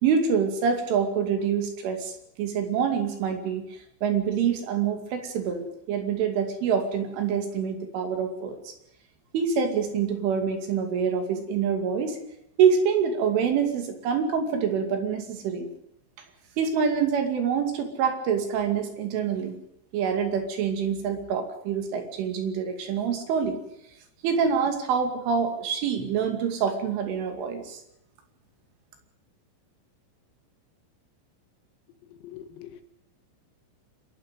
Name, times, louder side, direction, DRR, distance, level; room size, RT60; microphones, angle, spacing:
voice 1, 0.0-2.1 2.4-3.7 4.0-8.6 9.3-12.2 12.6-15.7 16.6-19.6 19.9-23.6 24.2-27.8, right 6 dB, 70° right, 5 dB, 4.8 m, -26 dB
voice 2, 32.2-32.8, left 10 dB, 85° left, 8 dB, 4.5 m, -43 dB
27.0 x 11.5 x 9.1 m, 0.79 s
omnidirectional pair, 6.0 m